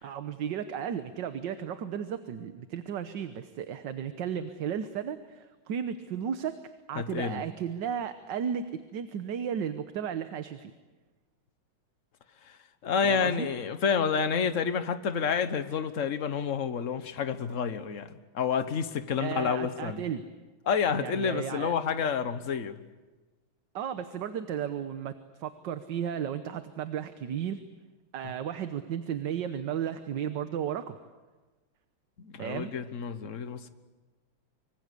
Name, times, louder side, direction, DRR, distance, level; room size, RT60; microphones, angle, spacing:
voice 1, 0.0-6.5 6.9-10.7 13.0-13.5 19.2-20.2 21.0-21.7 23.7-25.1 25.4-27.6 28.1-31.0 32.4-32.7, right 8 dB, 65° right, 10 dB, 1.6 m, -34 dB
voice 2, 7.0-7.4 12.4-12.6 12.8-20.0 20.7-22.8 32.2-33.7, left 6 dB, 45° left, 11 dB, 1.3 m, -29 dB
25.5 x 24.5 x 8.3 m, 1.3 s
omnidirectional pair, 2.3 m